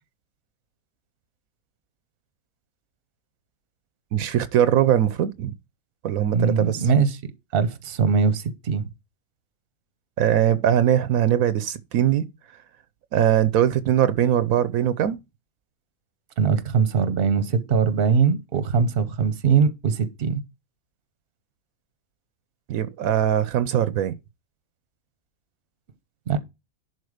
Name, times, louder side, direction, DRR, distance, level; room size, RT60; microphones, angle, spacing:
voice 1, 4.1-5.5 6.0-6.8 10.2-12.3 13.1-15.2 22.7-24.1, right 10 dB, 80° right, 1.1 m, -21 dB
voice 2, 6.3-7.2 7.5-8.9 16.4-20.4 26.3-26.4, right 6 dB, 45° right, 1.0 m, -21 dB
11.0 x 4.4 x 4.9 m
omnidirectional pair, 1.5 m